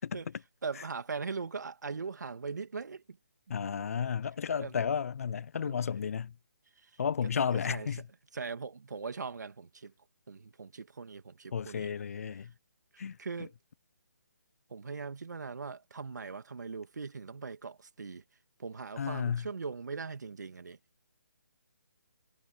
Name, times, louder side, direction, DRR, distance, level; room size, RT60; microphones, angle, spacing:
voice 1, 0.6-3.2 4.6-4.7 5.6-5.7 7.5-7.9 8.3-9.9 10.3-11.9 12.9-13.5 14.7-18.2 18.6-20.8, right 5 dB, 75° right, 2.1 m, -40 dB
voice 2, 3.5-6.3 7.0-8.1 11.5-12.5 13.0-13.5 19.0-19.5, left 7 dB, 55° left, 0.5 m, -33 dB
hypercardioid pair, 160°, 10 cm